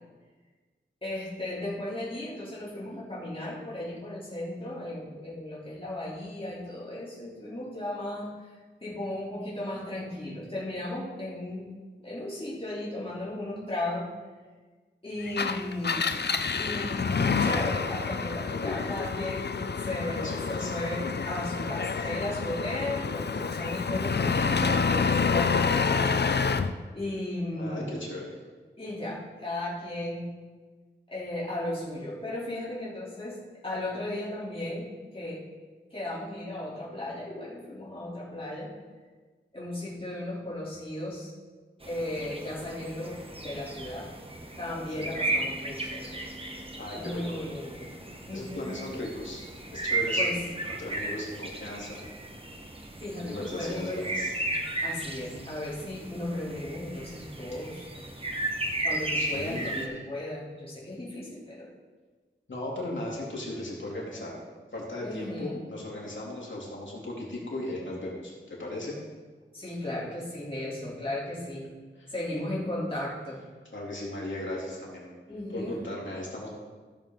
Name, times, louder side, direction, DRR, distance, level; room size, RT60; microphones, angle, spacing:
voice 1, 1.0-8.5 8.8-11.7 12.0-14.1 15.0-16.2 16.5-19.5 19.8-26.6 26.9-28.0 28.8-30.3 31.1-33.4 33.6-35.4 35.9-38.7 39.5-41.3 41.9-44.1 44.6-46.1 46.9-47.9 48.3-48.7 50.2-50.4 53.0-54.1 54.8-57.9 58.8-61.7 65.0-65.6 69.5-71.7 72.1-73.4 75.3-75.8, left 1 dB, 30° left, -8 dB, 3.5 m, -35 dB
Engine, 15.3-26.7, left 5 dB, 60° left, 0.5 m, -28 dB
voice 2, 20.1-20.7 21.2-21.7 21.9-22.1 27.6-28.3 45.0-45.1 46.8-47.4 48.3-49.4 49.7-52.0 53.2-54.3 59.1-60.0 62.5-64.3 64.7-69.0 72.0-72.1 73.7-75.1 75.5-76.5, left 1 dB, 75° left, -4 dB, 3.1 m, -37 dB
sound 1, 41.8-59.9, right 2 dB, 30° right, 1.3 m, -35 dB
15.5 x 7.4 x 3.9 m, 1.4 s
wide cardioid pair, 55°, 20 cm